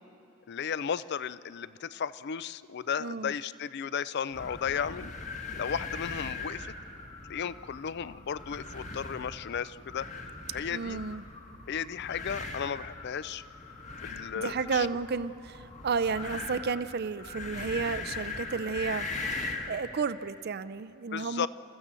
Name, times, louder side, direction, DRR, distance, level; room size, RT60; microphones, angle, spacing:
voice 1, 0.5-5.1 5.5-6.7 7.2-10.1 10.5-11.0 11.7-13.4 14.0-14.9 21.1-21.5, left 7 dB, 55° left, 17 dB, 0.4 m, -34 dB
voice 2, 3.0-3.3 10.7-11.2 14.4-21.5, right 5 dB, 50° right, 14 dB, 0.5 m, -32 dB
sound 1, 4.3-19.8, left 3 dB, 35° left, 1.5 m, -40 dB
29.5 x 14.0 x 7.5 m, 2.8 s
head